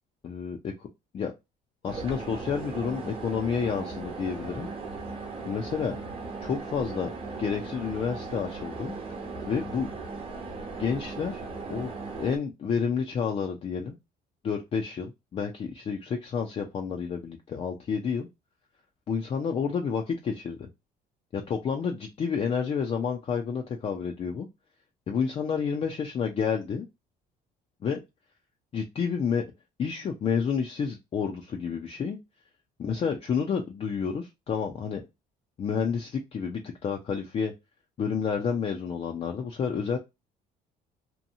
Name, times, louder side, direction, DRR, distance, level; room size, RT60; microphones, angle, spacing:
voice 1, 0.2-0.9 1.1-1.3 1.8-4.7 5.4-6.0 6.4-7.1 7.4-8.9 9.5-9.9 10.8-11.4 11.7-13.9 14.4-18.3 19.1-20.7 21.3-24.5 25.1-26.9 27.8-28.0 28.7-29.4 29.8-32.2 32.8-35.0 35.6-37.5 38.0-40.0, left 6 dB, 35° left, 2 dB, 0.5 m, -30 dB
sound 1, 1.9-12.4, right 3 dB, 35° right, 1.0 m, -37 dB
2.8 x 2.2 x 2.6 m, 0.22 s
cardioid pair, 110°, 17 cm